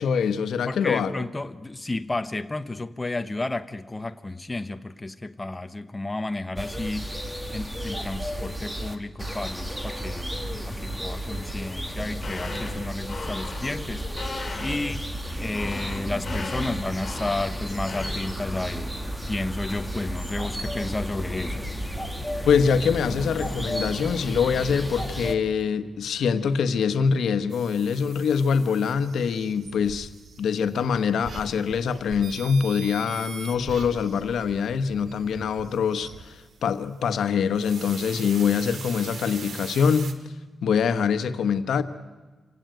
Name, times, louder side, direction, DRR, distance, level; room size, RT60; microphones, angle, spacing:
voice 1, 0.0-1.2 22.5-30.1 30.4-40.1 40.6-41.8, left 6 dB, 85° left, 1.2 m, -24 dB
voice 2, 0.7-7.2 7.5-10.4 10.7-14.3 14.6-15.1 15.4-21.7, left 2 dB, 15° left, 0.9 m, -32 dB
sound 1, 6.6-25.4, equal, 5° right, 1.7 m, -33 dB
sound 2, 11.9-23.3, left 3 dB, 35° left, 5.8 m, -39 dB
sound 3, 27.5-40.1, right 4 dB, 60° right, 2.1 m, -42 dB
27.0 x 17.0 x 9.1 m
wide cardioid pair, 130°, 0 cm